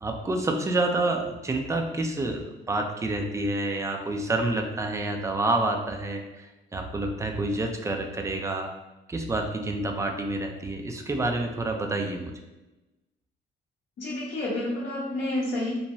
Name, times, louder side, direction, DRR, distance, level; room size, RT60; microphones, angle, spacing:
voice 1, 0.0-8.7 9.1-12.3, right 2 dB, 15° right, 4 dB, 0.4 m, -28 dB
voice 2, 14.0-15.7, left 1 dB, 60° left, -6 dB, 0.7 m, -29 dB
2.7 x 2.2 x 2.9 m, 1.0 s
cardioid pair, 90°, 20 cm